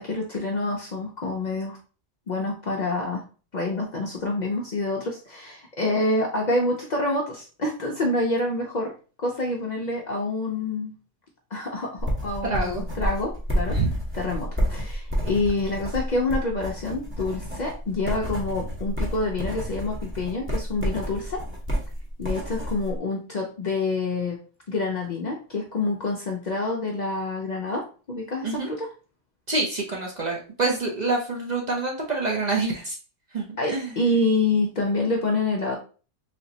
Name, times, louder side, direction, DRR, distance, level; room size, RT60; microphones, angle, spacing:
voice 1, 0.0-1.8 2.3-3.2 3.5-8.9 9.2-10.9 11.5-13.8 14.1-21.4 22.2-24.4 24.7-28.9 33.6-35.8, left 2 dB, 50° left, 0 dB, 0.5 m, -27 dB
sound 1, 12.0-22.9, equal, 10° right, 0.7 m, -30 dB
voice 2, 12.4-12.8 13.7-13.9 28.4-28.7 29.5-33.0 33.3-34.0, right 3 dB, 45° right, -1 dB, 0.6 m, -26 dB
3.3 x 3.0 x 2.7 m, 0.37 s
omnidirectional pair, 1.2 m